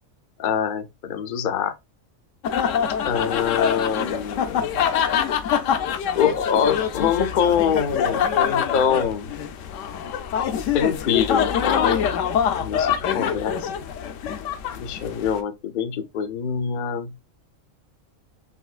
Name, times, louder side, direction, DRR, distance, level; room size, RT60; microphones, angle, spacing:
voice 1, 0.4-1.7 3.0-4.7 6.1-9.3 10.7-12.0 12.6-13.7 14.8-17.1, left 8 dB, 55° left, 0.6 m, -24 dB
sound 1, 2.4-15.4, left 8 dB, 70° left, 0.9 m, -25 dB
5.4 x 3.0 x 2.4 m
omnidirectional pair, 1.4 m